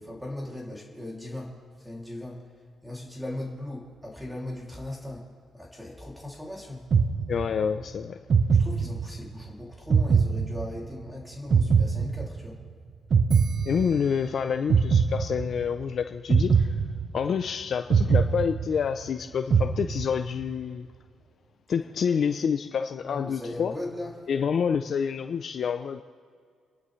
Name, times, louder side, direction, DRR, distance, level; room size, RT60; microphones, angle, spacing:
voice 1, 0.0-1.5 1.8-2.4 2.8-5.3 5.5-6.9 8.5-12.6 23.0-24.1, left 1 dB, 5° right, -1 dB, 2.7 m, -38 dB
sound 1, 6.9-7.8 8.3-9.4 9.9-11.1 11.5-12.7 13.1-14.3 14.7-15.8 16.3-17.5 17.9-19.1 19.5-20.4, right 5 dB, 45° right, 0.7 m, -23 dB
voice 2, 7.3-8.2 13.7-16.8 17.1-20.9 21.7-23.7 24.3-26.0, left 7 dB, 55° left, 8 dB, 0.5 m, -28 dB
29.5 x 11.0 x 3.2 m, 2.1 s
cardioid pair, 90°, 0 cm